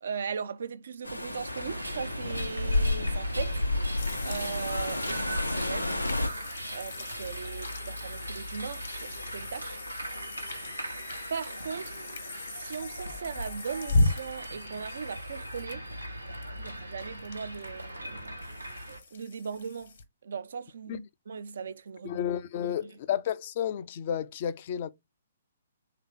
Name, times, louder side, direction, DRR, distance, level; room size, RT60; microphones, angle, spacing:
voice 1, 0.0-9.8 11.3-12.0 12.5-15.9 16.6-20.0 20.2-22.2 22.6-22.9, right 6 dB, 55° right, 0.4 m, -39 dB
sound 1, 1.0-6.3, left 2 dB, 90° left, 0.7 m, -30 dB
sound 2, 1.5-19.0, right 1 dB, 90° right, 0.9 m, -40 dB
sound 3, 4.0-20.0, left 2 dB, 55° left, 1.1 m, -36 dB
voice 2, 22.0-24.9, left 9 dB, 40° left, 0.5 m, -32 dB
3.4 x 2.8 x 3.6 m
figure-of-eight pair, 125°, 0 cm